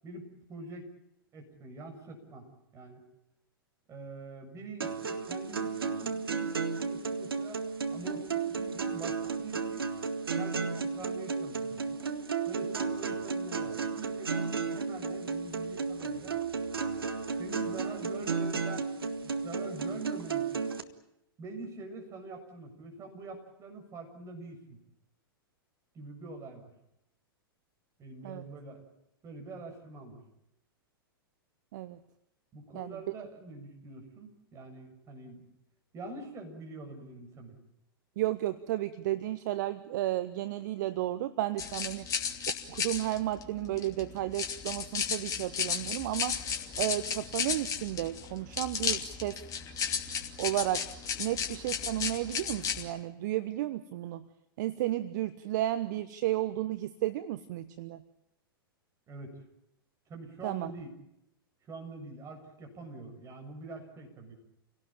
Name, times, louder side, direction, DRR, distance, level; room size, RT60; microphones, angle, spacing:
voice 1, 0.0-0.9 1.3-2.5 2.7-3.0 3.9-7.6 7.9-9.8 10.3-11.8 12.5-16.4 17.3-18.9 19.2-20.7 21.4-24.8 25.9-26.7 28.0-28.8 29.2-30.2 32.5-35.5 35.9-37.6 59.1-59.4 60.1-60.9 61.7-64.3, right 3 dB, 25° right, 4 dB, 7.2 m, -45 dB
sound 1, 4.8-20.8, right 5 dB, 75° right, 1.9 m, -33 dB
voice 2, 38.2-42.1 42.7-46.4 46.8-49.4 50.4-50.9 51.2-54.3 54.6-58.0 60.4-60.7, right 14 dB, 50° right, 12 dB, 1.1 m, -33 dB
sound 2, 41.6-52.9, left 7 dB, 25° left, 2.8 m, -34 dB
28.5 x 18.0 x 8.9 m, 0.84 s
figure-of-eight pair, 100°, 12 cm